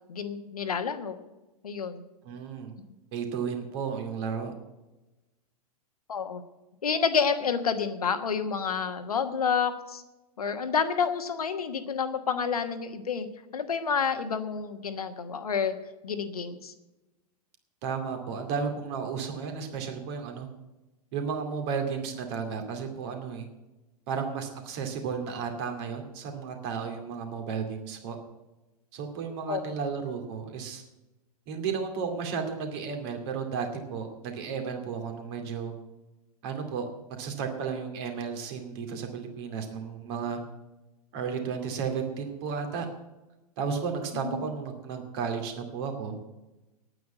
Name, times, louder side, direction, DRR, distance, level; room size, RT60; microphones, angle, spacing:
voice 1, 0.1-1.2 1.6-2.0 6.1-6.4 6.8-10.0 10.4-13.3 13.5-15.7 16.0-16.7 29.5-29.7 44.2-44.4, left 6 dB, 70° left, 8 dB, 1.3 m, -29 dB
voice 2, 2.2-2.7 3.1-4.5 17.8-20.5 21.1-23.5 24.1-28.2 28.9-30.8 31.5-35.7 36.4-36.9 37.2-40.4 41.1-42.9 43.6-46.2, right 6 dB, 45° right, 5 dB, 2.3 m, -33 dB
9.4 x 9.1 x 9.1 m, 1.0 s
figure-of-eight pair, 100°, 20 cm